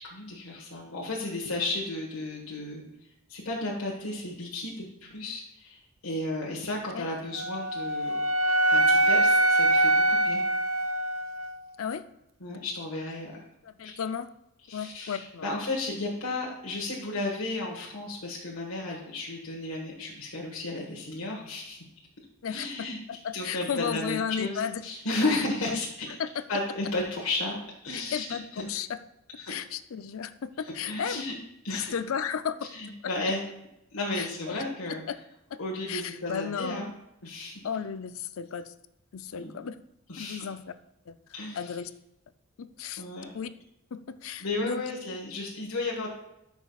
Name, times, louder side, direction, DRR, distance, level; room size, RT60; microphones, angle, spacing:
voice 1, 0.0-2.8 3.3-8.2 8.7-10.4 12.4-13.4 13.8-13.9 14.7-21.8 22.5-23.0 23.3-26.1 26.5-27.6 27.8-28.6 29.4-29.5 30.6-31.3 31.6-31.9 32.7-33.4 33.9-35.0 35.6-36.9 37.2-37.6 39.3-39.5 40.1-40.4 41.3-41.8 43.0-43.3 44.4-46.1, left 2 dB, 85° left, -3 dB, 1.5 m, -33 dB
Wind instrument woodwind instrument, 7.3-11.5, right 1 dB, 65° right, 0.5 m, -23 dB
voice 2, 13.6-14.3 14.7-15.5 22.4-24.8 25.3-25.8 26.2-26.4 27.9-29.0 29.5-31.2 31.7-32.7 34.1-34.6 34.9-35.2 35.5-35.6 35.9-36.9 37.6-38.7 39.1-39.8 40.2-40.6 41.1-41.2 41.5-41.9 42.6-43.0 43.3-43.5 43.9-44.8, left 7 dB, 70° left, 12 dB, 0.5 m, -34 dB
13.5 x 6.1 x 2.4 m, 0.86 s
head